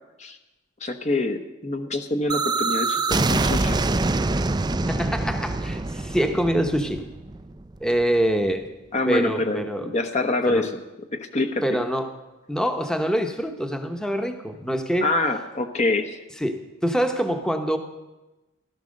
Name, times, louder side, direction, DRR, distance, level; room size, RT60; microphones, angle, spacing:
voice 1, 0.8-3.8 8.9-10.7 11.1-11.8 15.0-16.2, left 2 dB, 35° left, 6 dB, 1.0 m, -25 dB
sound 1, 2.3-8.0, right 3 dB, 20° right, 0.5 m, -25 dB
voice 2, 4.9-7.0 7.8-8.7 9.1-9.9 10.5-10.6 11.6-12.1 12.5-15.1 16.4-17.8, equal, 5° left, 6 dB, 1.0 m, -25 dB
16.5 x 12.0 x 6.5 m, 1.1 s
head